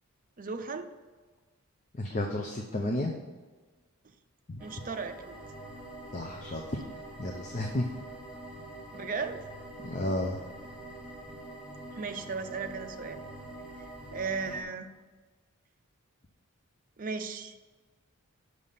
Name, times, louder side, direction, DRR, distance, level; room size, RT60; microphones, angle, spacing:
voice 1, 0.4-0.9 4.6-5.3 8.9-9.4 12.0-13.2 13.8-14.9 17.0-17.5, right 4 dB, 40° right, 7 dB, 0.6 m, -36 dB
voice 2, 1.9-3.1 4.5-4.6 6.1-6.8 7.2-7.9 9.8-10.4, left 1 dB, 35° left, 2 dB, 0.6 m, -32 dB
sound 1, 4.6-14.6, right 1 dB, 5° right, 1.3 m, -45 dB
6.3 x 5.6 x 6.7 m, 1.3 s
head